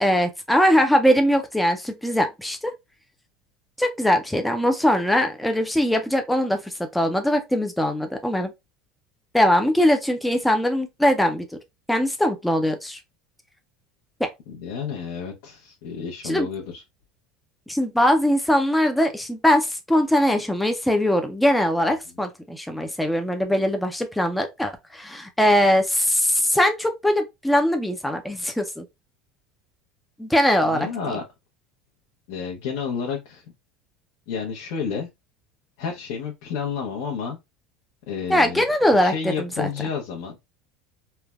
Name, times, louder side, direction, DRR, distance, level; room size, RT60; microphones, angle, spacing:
voice 1, 0.0-2.7 3.8-8.5 9.3-11.5 11.9-13.0 14.2-14.3 16.2-16.5 17.7-28.8 30.2-30.9 38.3-39.7, equal, 5° left, 0.3 m, -21 dB
voice 2, 14.5-16.8 30.6-31.2 32.3-33.4 34.3-35.1 35.8-37.4 38.1-38.6 38.9-40.5, left 6 dB, 70° left, 0.6 m, -30 dB
3.2 x 2.1 x 2.2 m
cardioid pair, 145°, 0 cm